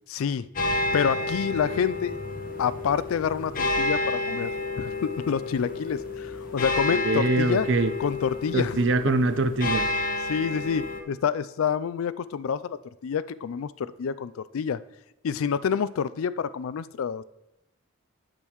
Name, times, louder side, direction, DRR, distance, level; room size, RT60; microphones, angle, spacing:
voice 1, 0.1-0.5 0.9-2.1 2.6-4.5 4.8-7.7 8.0-8.8 10.3-14.8 15.2-17.2, left 7 dB, 75° left, 17 dB, 0.4 m, -28 dB
sound 1, 0.6-11.0, left 2 dB, 40° left, 0.9 m, -30 dB
voice 2, 6.9-7.9 8.5-9.9, right 3 dB, 55° right, 11 dB, 0.5 m, -24 dB
8.8 x 8.2 x 3.0 m, 0.90 s
head